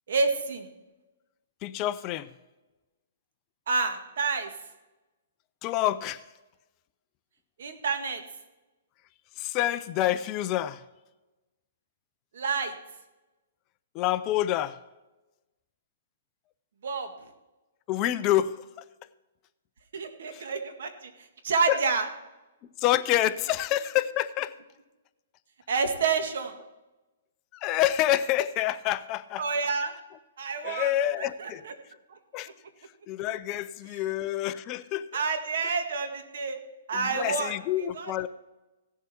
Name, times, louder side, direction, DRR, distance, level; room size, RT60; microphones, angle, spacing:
voice 1, 0.1-0.7 3.7-4.5 7.6-8.2 12.3-12.8 16.8-17.1 19.9-21.1 21.4-22.1 25.7-26.6 29.4-30.0 30.4-31.7 35.1-36.6 36.9-38.1, right 4 dB, 70° right, 6 dB, 1.9 m, -29 dB
voice 2, 1.6-2.3 5.6-6.2 9.4-10.8 13.9-14.8 17.9-18.6 20.3-20.4 21.7-21.8 22.8-24.5 27.6-29.4 30.6-31.6 32.3-32.5 33.1-35.1 36.9-38.3, left 13 dB, 25° left, 14 dB, 0.4 m, -27 dB
17.0 x 7.3 x 4.4 m, 1.1 s
hypercardioid pair, 160°, 0 cm